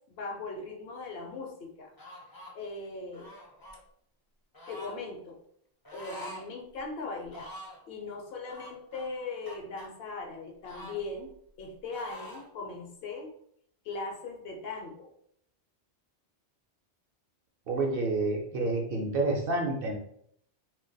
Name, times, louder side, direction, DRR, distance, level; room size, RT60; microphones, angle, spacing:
voice 1, 0.1-1.9 2.5-3.3 4.7-5.4 5.9-7.5 7.9-11.3 11.6-13.3 13.8-15.1, left 3 dB, 65° left, 2 dB, 0.7 m, -39 dB
sound 1, 2.0-2.5 3.1-3.8 4.5-5.0 5.8-6.5 6.8-6.9 7.3-7.8 8.5-9.9 10.6-11.6 11.9-12.5, equal, 30° left, 0.4 m, -46 dB
voice 2, 17.7-20.0, right 2 dB, 60° right, 1 dB, 0.7 m, -29 dB
2.2 x 2.2 x 3.7 m, 0.69 s
omnidirectional pair, 1.2 m